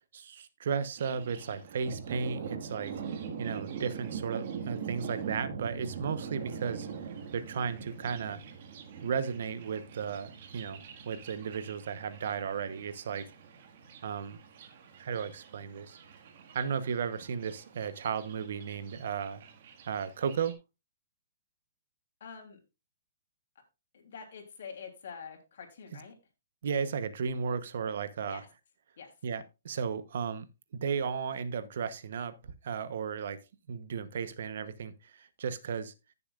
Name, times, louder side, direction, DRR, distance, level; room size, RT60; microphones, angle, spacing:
voice 1, 0.1-2.9 3.4-6.9 7.3-8.4 9.0-13.3 14.0-14.4 15.0-16.0 16.5-19.5 19.9-20.5 26.6-28.4 29.2-30.5 30.7-33.4 33.7-35.9, right 6 dB, 65° right, 1.0 m, -34 dB
Thunder, 1.0-20.5, right 6 dB, 45° right, 1.7 m, -43 dB
voice 2, 22.2-22.6 23.9-26.2 28.3-28.5 29.0-29.1, left 6 dB, 65° left, 3.2 m, -46 dB
15.5 x 6.9 x 2.4 m
hypercardioid pair, 160°, 0 cm